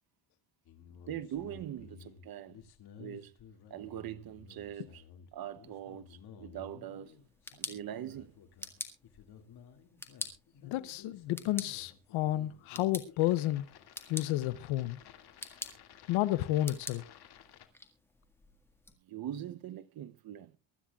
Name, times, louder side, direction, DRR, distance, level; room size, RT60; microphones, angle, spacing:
sound 1, 0.7-17.7, left 7 dB, 55° left, 2.3 m, -55 dB
voice 1, 1.1-2.6 3.0-3.3 3.7-5.0 5.3-7.1 7.6-8.3 19.1-20.6, right 11 dB, 50° right, 0.8 m, -42 dB
sound 2, 7.2-18.9, left 1 dB, 5° left, 1.8 m, -47 dB
voice 2, 10.6-13.6 14.1-15.0 16.1-17.0, left 15 dB, 90° left, 0.8 m, -31 dB
24.0 x 13.0 x 2.4 m
cardioid pair, 130°, 46 cm